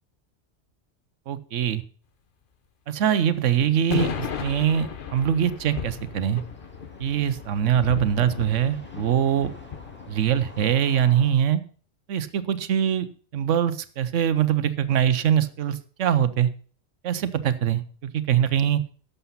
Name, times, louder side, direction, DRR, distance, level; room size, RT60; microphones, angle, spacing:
voice 1, 1.3-1.8 2.9-6.4 7.0-9.5 10.1-11.6 12.1-13.1 13.3-16.5 17.0-18.8, right 9 dB, 85° right, 14 dB, 1.1 m, -23 dB
sound 1, 3.2-11.3, equal, 10° left, 1.8 m, -50 dB
sound 2, 3.9-10.7, left 7 dB, 50° left, 1.0 m, -35 dB
11.5 x 7.0 x 5.5 m, 0.43 s
omnidirectional pair, 1.2 m